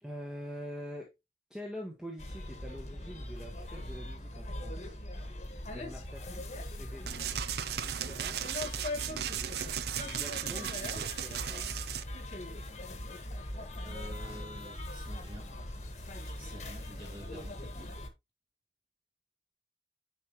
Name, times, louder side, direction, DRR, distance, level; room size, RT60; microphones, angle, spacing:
voice 1, 0.0-1.1 1.5-4.9 5.7-6.4 6.7-7.2 7.8-8.4 9.1-9.7 10.0-11.6, equal, 5° right, 1.4 m, -45 dB
sound 1, 2.2-18.1, left 1 dB, 40° left, 1.5 m, -41 dB
sound 2, 7.1-12.0, right 10 dB, 60° right, 0.5 m, -36 dB
voice 2, 13.8-15.5 16.2-17.9, right 1 dB, 30° right, 3.1 m, -49 dB
9.6 x 5.1 x 3.0 m
head